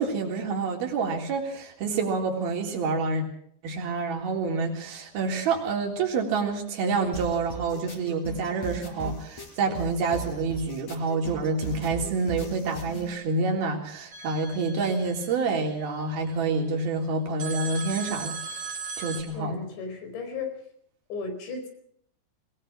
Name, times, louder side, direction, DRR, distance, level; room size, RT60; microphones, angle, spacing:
voice 1, 0.0-3.2 3.6-18.4 19.0-19.6, right 4 dB, 55° right, 1 dB, 5.3 m, -28 dB
sound 1, 7.1-13.1, right 4 dB, 40° left, 5.2 m, -38 dB
sound 2, 14.1-16.4 17.4-19.2, right 4 dB, 30° right, 3.1 m, -38 dB
voice 2, 19.3-20.6 21.1-21.7, left 4 dB, 75° left, 6 dB, 6.8 m, -35 dB
21.5 x 20.0 x 6.1 m, 0.65 s
omnidirectional pair, 5.2 m